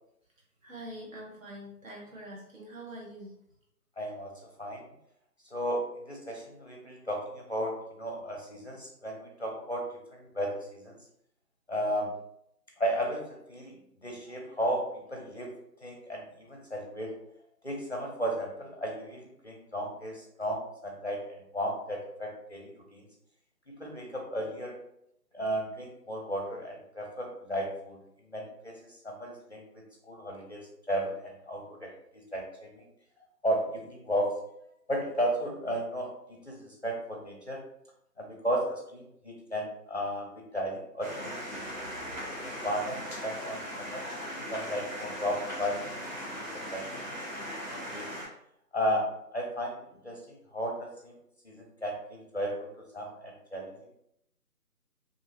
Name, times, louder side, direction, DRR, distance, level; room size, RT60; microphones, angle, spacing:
voice 1, 0.6-3.3, right 1 dB, 55° right, -3 dB, 1.0 m, -44 dB
voice 2, 4.0-4.3 4.6-4.9 5.5-11.0 11.7-12.1 12.8-15.5 15.8-17.1 17.6-23.0 23.7-24.8 25.3-28.0 28.3-29.6 30.0-32.9 33.4-34.3 34.9-37.6 38.2-41.9 42.4-44.1 44.5-45.8 46.3-46.9 47.3-47.5 47.9-48.1 48.7-51.2 51.4-52.7 52.9-54.0, equal, 45° left, 0 dB, 0.5 m, -34 dB
sound 1, 41.0-48.3, equal, 25° right, 1.1 m, -39 dB
2.6 x 2.6 x 2.8 m, 0.75 s
figure-of-eight pair, 160°, 48 cm